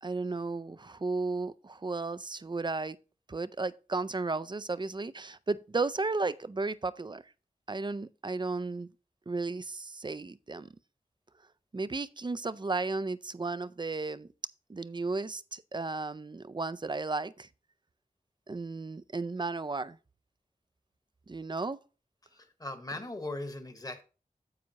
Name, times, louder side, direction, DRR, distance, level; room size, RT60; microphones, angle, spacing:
voice 1, 0.0-3.0 3.3-7.2 7.7-8.9 9.3-10.7 11.7-14.3 14.7-17.5 18.5-20.0 21.3-21.8, right 3 dB, 30° right, 0.4 m, -34 dB
voice 2, 22.3-24.0, left 2 dB, 25° left, 1.3 m, -39 dB
9.7 x 8.4 x 2.9 m
wide cardioid pair, 85°, 15 cm